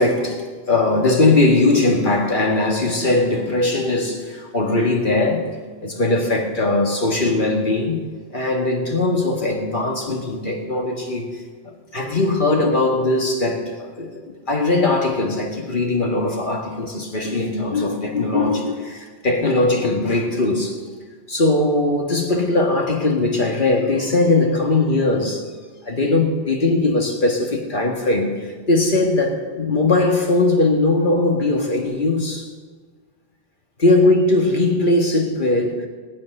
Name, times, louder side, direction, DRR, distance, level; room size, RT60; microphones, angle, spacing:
voice 1, 0.0-5.5 5.8-8.0 8.3-11.4 11.9-20.8 21.3-25.4 25.8-32.5 33.8-35.9, left 2 dB, 45° left, 2 dB, 2.0 m, -20 dB
18.5 x 8.5 x 6.6 m, 1.5 s
omnidirectional pair, 1.2 m